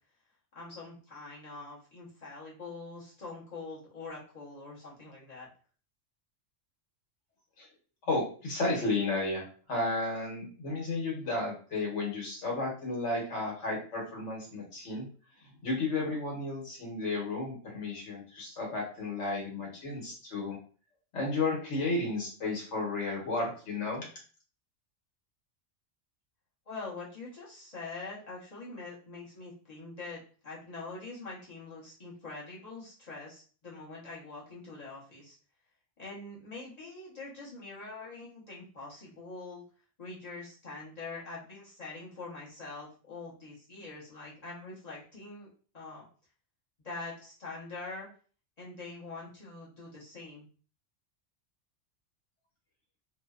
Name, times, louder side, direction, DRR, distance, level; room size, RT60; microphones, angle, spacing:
voice 1, 0.5-5.5 26.7-35.4 36.0-39.6 40.0-46.0 46.8-48.1 48.6-50.5, left 3 dB, 35° left, -6 dB, 1.0 m, -44 dB
voice 2, 8.1-9.4 9.7-15.1 15.6-20.6 21.1-24.0, left 2 dB, 80° left, -2 dB, 1.4 m, -33 dB
2.9 x 2.0 x 2.3 m, 0.40 s
omnidirectional pair, 1.2 m